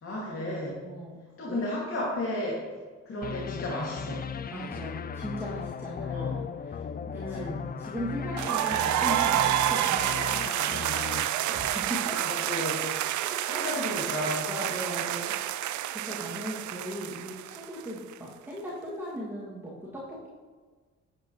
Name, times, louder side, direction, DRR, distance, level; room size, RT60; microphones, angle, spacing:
voice 1, 0.0-0.8 1.4-2.6 3.1-4.2 6.0-6.4 7.1-7.6 12.1-12.8 13.4-14.5, left 1 dB, 45° left, -5 dB, 2.4 m, -33 dB
voice 2, 0.8-1.2 1.5-1.6 4.5-6.8 7.1-7.4 7.8-10.9 11.4-12.2 13.5-13.6 14.5-20.3, equal, 5° right, -8 dB, 2.3 m, -38 dB
sound 1, 3.2-12.3, left 7 dB, 30° left, 0.4 m, -37 dB
sound 2, 8.4-18.1, right 12 dB, 75° right, 0.5 m, -29 dB
9.1 x 9.0 x 3.2 m, 1.4 s
cardioid pair, 90°, 30 cm